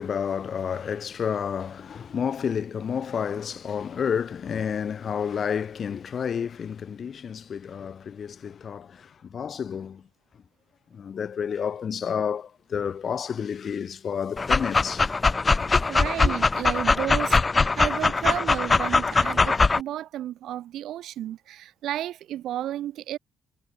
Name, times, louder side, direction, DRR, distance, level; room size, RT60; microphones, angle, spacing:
voice 1, 0.0-10.0 10.9-15.1 15.5-15.8, left 7 dB, 50° left, 4.5 m, -30 dB
Dog, 14.4-19.8, left 3 dB, 25° left, 1.7 m, -22 dB
voice 2, 15.9-17.4 17.7-23.2, right 12 dB, 80° right, 4.8 m, -32 dB
cardioid pair, 90°, 0 cm